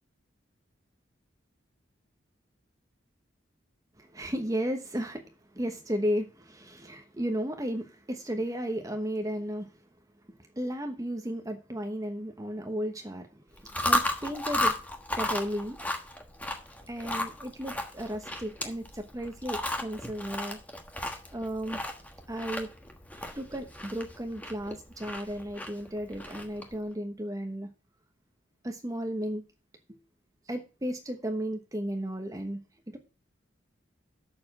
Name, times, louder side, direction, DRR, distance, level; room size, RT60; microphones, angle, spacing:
voice 1, 4.0-5.2 5.5-9.7 10.5-13.3 13.8-14.8 15.1-15.8 16.9-20.6 21.3-21.8 22.3-22.7 23.1-27.7 28.6-29.4 30.5-32.6, equal, 20° right, 1.0 m, -34 dB
Chewing mastication, 13.5-26.8, left 1 dB, 10° left, 1.3 m, -34 dB
6.9 x 6.7 x 7.4 m
head